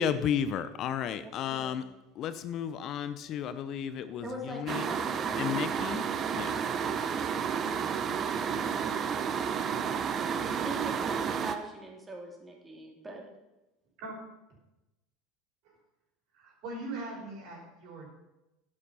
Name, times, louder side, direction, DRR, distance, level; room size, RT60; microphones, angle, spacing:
voice 1, 0.0-1.8 2.2-4.8 5.4-6.0 6.3-6.6, left 8 dB, 45° left, 12 dB, 0.7 m, -33 dB
voice 2, 1.2-1.7 4.2-5.6 10.3-13.2, right 1 dB, 20° right, 0 dB, 3.1 m, -42 dB
sound 1, 4.7-11.6, right 7 dB, 35° right, 1.0 m, -31 dB
voice 3, 16.4-18.1, right 2 dB, 60° right, -1 dB, 5.1 m, -41 dB
11.5 x 8.7 x 5.6 m, 0.97 s
hypercardioid pair, 75°, 0 cm